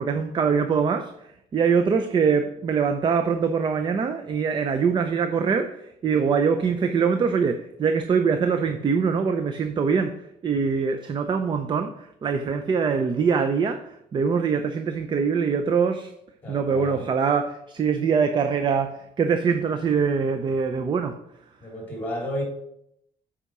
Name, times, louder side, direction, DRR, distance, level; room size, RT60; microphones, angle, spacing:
voice 1, 0.0-16.1 16.5-21.2, right 6 dB, 35° right, 0.5 m, -23 dB
voice 2, 16.4-17.0 21.6-22.4, equal, 15° left, 3.4 m, -32 dB
8.2 x 4.9 x 4.8 m
cardioid pair, 125°, 13 cm